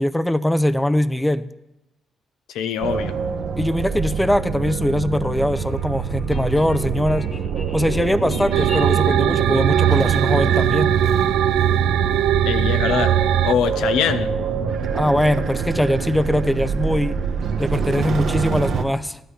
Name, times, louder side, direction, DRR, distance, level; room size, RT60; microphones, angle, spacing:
voice 1, 0.0-1.5 3.6-7.3 7.7-10.9 14.9-17.2 17.6-19.2, left 1 dB, 5° left, 14 dB, 0.5 m, -21 dB
voice 2, 2.5-3.1 12.4-13.1 13.4-14.3, left 8 dB, 90° left, 10 dB, 0.6 m, -23 dB
sound 1, 2.8-18.8, right 6 dB, 65° right, 1.0 m, -25 dB
sound 2, 5.5-10.8, left 1 dB, 50° left, 2.5 m, -38 dB
sound 3, 8.5-13.5, right 10 dB, 85° right, 0.3 m, -19 dB
12.5 x 11.5 x 3.4 m, 0.93 s
cardioid pair, 90°, 0 cm